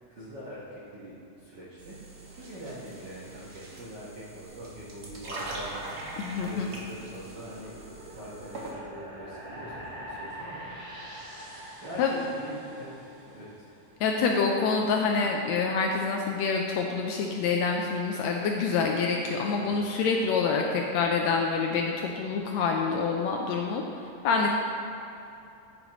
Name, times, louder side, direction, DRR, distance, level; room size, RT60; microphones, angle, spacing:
voice 1, 0.1-2.0 2.3-7.7 8.1-11.1 11.8-13.0 13.2-13.7 19.6-19.8, equal, 55° right, -8 dB, 1.2 m, -43 dB
sound 1, 1.8-8.7, right 2 dB, 85° right, 0.8 m, -42 dB
sound 2, 4.9-13.8, right 1 dB, 20° right, 1.4 m, -45 dB
voice 2, 6.2-6.7 12.0-12.1 14.0-24.5, left 5 dB, 80° left, 1 dB, 1.6 m, -27 dB
9.3 x 9.1 x 3.0 m, 2.7 s
omnidirectional pair, 3.5 m